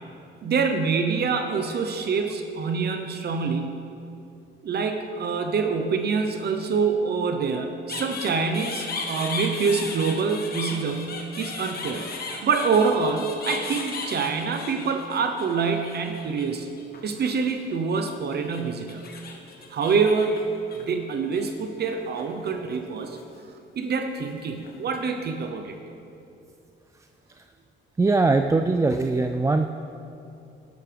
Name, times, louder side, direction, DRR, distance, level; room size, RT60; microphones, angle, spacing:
voice 1, 0.4-3.8 4.6-16.7 17.0-19.0 19.7-20.4 20.8-23.2 23.8-25.8, right 5 dB, 55° right, 5 dB, 0.8 m, -26 dB
sound 1, 7.9-16.5 16.8-17.7 18.3-21.4 21.9-22.8 23.0-23.4 24.3-25.0, left 4 dB, 50° left, 1.5 m, -36 dB
voice 2, 28.0-29.7, right 3 dB, 15° right, 6 dB, 0.4 m, -21 dB
13.0 x 11.5 x 3.4 m, 2.6 s
cardioid pair, 90°, 20 cm